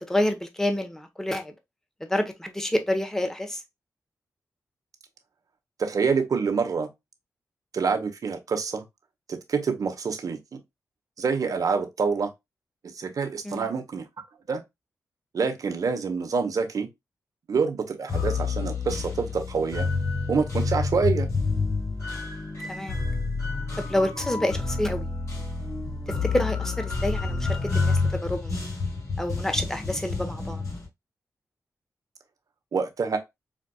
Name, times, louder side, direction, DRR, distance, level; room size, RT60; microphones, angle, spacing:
voice 1, 0.0-1.5 2.1-3.6 13.4-13.6 22.7-23.0 23.9-25.1 26.2-28.5 29.2-30.6, left 1 dB, 5° left, 1.0 m, -28 dB
voice 2, 5.8-6.9 7.7-8.8 9.3-10.6 11.2-12.3 12.8-14.0 14.5-14.6 15.3-16.9 17.5-19.9 20.3-21.3 32.7-33.2, right 5 dB, 65° right, 0.9 m, -26 dB
sound 1, 18.1-30.9, left 4 dB, 50° left, 2.6 m, -29 dB
5.1 x 2.5 x 2.2 m
cardioid pair, 70°, 6 cm